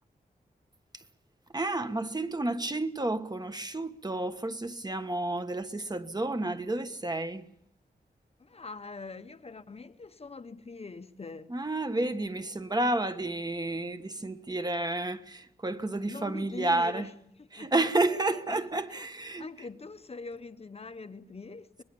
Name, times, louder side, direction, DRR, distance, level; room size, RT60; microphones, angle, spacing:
voice 1, 1.5-7.5 11.5-17.1 17.5-19.4, right 2 dB, 25° right, 1.3 m, -31 dB
voice 2, 8.4-11.6 14.2-14.4 16.1-17.1 17.4-17.7 18.5-19.1 19.4-21.8, left 4 dB, 40° left, 0.9 m, -43 dB
25.0 x 20.0 x 7.0 m
wide cardioid pair, 100°, 16 cm